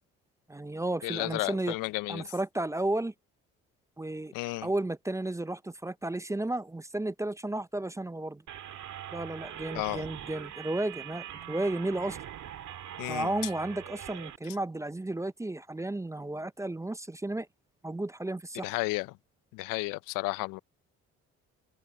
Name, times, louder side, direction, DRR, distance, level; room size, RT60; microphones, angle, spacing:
voice 1, 0.5-1.7 2.1-3.1 4.0-4.3 4.6-8.4 9.1-12.2 13.1-17.5 17.8-18.7, right 2 dB, 10° right, 0.5 m, -33 dB
voice 2, 1.0-2.3 4.3-4.7 9.7-10.1 13.0-13.3 18.6-19.2 19.5-20.6, left 23 dB, 85° left, 0.5 m, -33 dB
sound 1, 8.5-14.4, right 11 dB, 65° right, 2.3 m, -43 dB
supercardioid pair, 65°, 32 cm